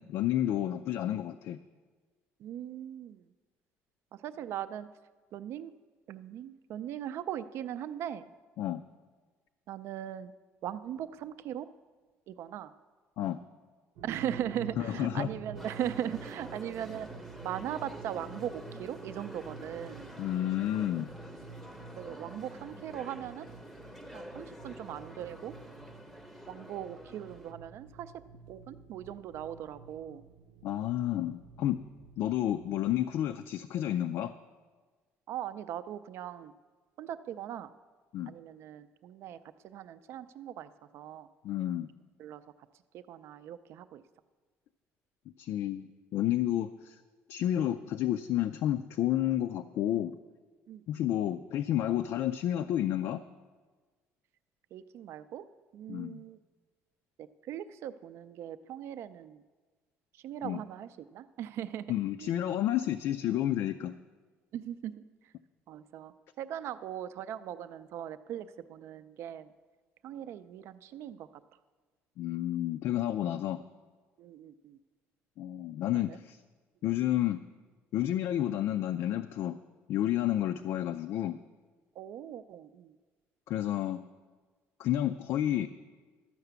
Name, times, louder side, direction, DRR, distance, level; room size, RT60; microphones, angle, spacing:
voice 1, 0.0-1.6 8.6-8.8 13.2-13.4 14.8-15.3 20.2-21.1 30.6-31.8 32.2-34.3 38.1-38.3 41.4-41.9 45.4-47.0 47.3-50.1 50.9-53.2 55.9-56.2 60.4-60.6 61.9-64.0 72.2-73.6 75.4-76.4 76.8-77.4 77.9-79.6 79.9-81.4 83.5-84.0 84.8-85.7, left 12 dB, 65° left, 8 dB, 0.4 m, -30 dB
voice 2, 2.4-3.2 4.1-4.9 5.3-5.7 6.1-8.3 9.7-10.3 10.6-11.7 12.3-12.7 14.0-17.1 17.4-20.1 22.0-23.5 24.1-25.5 26.5-28.1 28.5-30.2 35.3-36.5 37.0-37.7 38.3-39.4 39.6-41.3 42.2-42.4 42.9-44.0 50.7-51.0 54.7-55.4 55.7-56.4 57.2-59.4 60.2-62.0 62.2-62.3 64.5-65.0 65.7-69.5 70.0-71.3 74.2-74.8 76.1-76.2 82.0-82.9, right 10 dB, 60° right, 13 dB, 0.4 m, -39 dB
sound 1, 14.0-33.4, right 5 dB, 90° right, 0.7 m, -50 dB
sound 2, 15.5-27.5, equal, ahead, 0.7 m, -48 dB
12.0 x 5.8 x 8.1 m, 1.4 s
cardioid pair, 155°, 5 cm